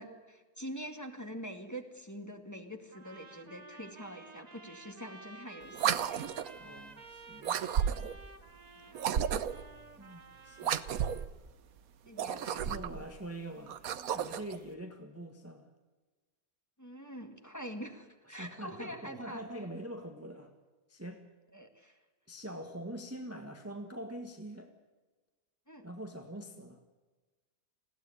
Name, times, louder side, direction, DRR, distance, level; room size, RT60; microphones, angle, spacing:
voice 1, 0.0-6.2 8.8-9.1 12.0-13.0 16.8-19.4 21.5-22.0 25.7-25.9, equal, 10° left, 4 dB, 2.0 m, -45 dB
sound 1, 2.9-11.3, right 3 dB, 30° right, 1.2 m, -52 dB
sound 2, 5.7-6.6 7.4-8.2 8.9-9.7 10.6-11.3 12.1-13.0 13.7-14.6, right 9 dB, 70° right, 1.3 m, -32 dB
voice 2, 6.6-7.6 10.0-10.8 12.3-15.7 18.3-20.5 20.9-21.2 22.3-24.7 25.8-26.8, right 1 dB, 10° right, 4 dB, 1.5 m, -44 dB
20.5 x 16.0 x 9.8 m, 1.3 s
omnidirectional pair, 1.6 m